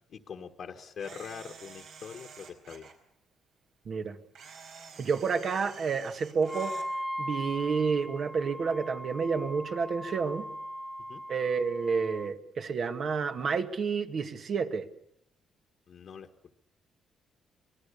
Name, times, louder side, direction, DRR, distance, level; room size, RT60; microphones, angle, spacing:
voice 1, 0.1-2.9 11.1-11.2 15.9-16.3, left 7 dB, 60° left, 3 dB, 1.5 m, -43 dB
Camera, 1.0-2.9 4.4-6.9, right 6 dB, 75° right, 4.9 m, -49 dB
voice 2, 3.9-4.2 5.0-6.7 7.2-10.5 11.3-14.9, right 5 dB, 55° right, 7 dB, 1.9 m, -30 dB
Wind instrument woodwind instrument, 6.4-12.3, equal, 5° left, 0.8 m, -39 dB
25.5 x 19.5 x 7.0 m, 0.75 s
cardioid pair, 90°, 0 cm